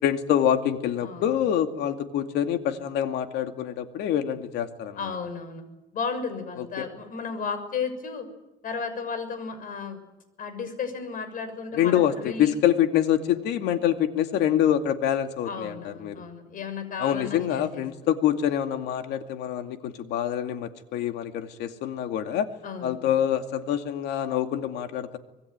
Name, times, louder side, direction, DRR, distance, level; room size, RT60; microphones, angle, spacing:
voice 1, 0.0-5.2 6.6-6.9 11.8-16.2 17.0-22.5 22.8-25.2, left 10 dB, 85° left, 6 dB, 2.4 m, -26 dB
voice 2, 5.0-5.6 5.9-8.3 8.6-10.0 10.4-12.5 15.5-17.8 22.6-23.0, left 5 dB, 55° left, 10 dB, 6.4 m, -34 dB
26.0 x 21.0 x 9.6 m, 1.0 s
cardioid pair, 110°, 17 cm